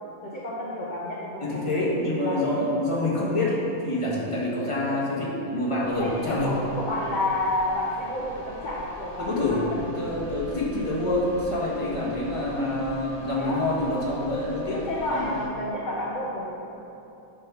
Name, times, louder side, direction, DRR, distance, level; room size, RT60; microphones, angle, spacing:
voice 1, 0.2-2.6 6.0-10.1 13.3-13.6 14.8-16.5, left 1 dB, 40° left, -6 dB, 0.9 m, -30 dB
voice 2, 1.4-6.5 9.2-9.6 9.9-15.3, left 1 dB, 20° left, -5 dB, 1.4 m, -27 dB
sound 1, 5.8-15.5, equal, 35° right, 1.5 m, -45 dB
8.9 x 3.8 x 6.0 m, 2.9 s
omnidirectional pair, 1.5 m